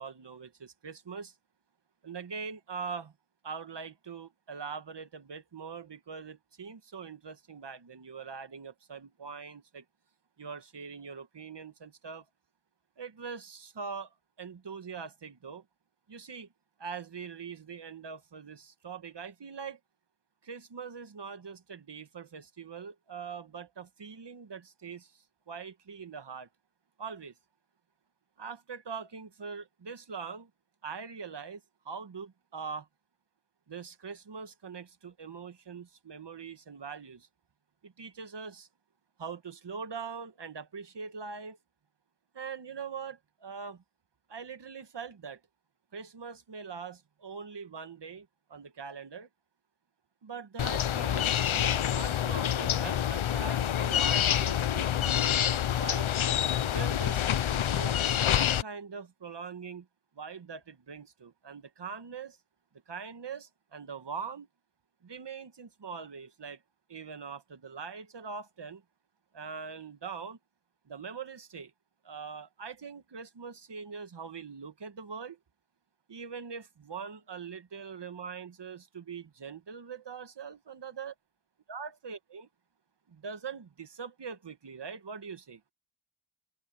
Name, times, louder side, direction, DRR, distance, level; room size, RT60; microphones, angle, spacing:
voice 1, 0.0-1.3 2.0-3.1 3.4-9.8 10.4-12.2 13.0-14.1 14.4-15.6 16.1-16.5 16.8-19.8 20.4-25.1 25.5-26.5 27.0-27.3 28.4-30.5 30.8-32.9 33.7-37.3 37.8-38.7 39.2-41.6 42.3-43.8 44.3-45.4 45.9-49.3 50.2-55.3 55.7-56.1 56.7-59.9 60.1-62.4 62.9-64.5 65.0-66.6 66.9-68.8 69.3-70.4 70.9-71.7 72.0-75.4 76.1-81.1 81.7-82.5 83.1-85.6, right 5 dB, 55° right, 1.6 m, -42 dB
sound 1, 50.6-58.6, left 10 dB, 75° left, 0.8 m, -27 dB
wide cardioid pair, 70°, 49 cm